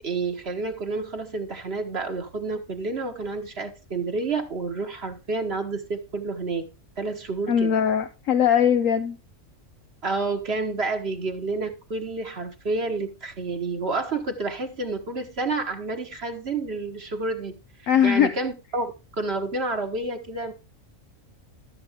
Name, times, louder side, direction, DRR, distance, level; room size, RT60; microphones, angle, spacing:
voice 1, 0.0-6.6 7.0-7.7 10.0-17.5 17.8-18.9 19.2-20.5, right 3 dB, 50° right, 1.5 m, -29 dB
voice 2, 7.5-9.2 17.9-18.3, left 8 dB, 75° left, 1.1 m, -20 dB
13.0 x 7.5 x 3.6 m
omnidirectional pair, 1.4 m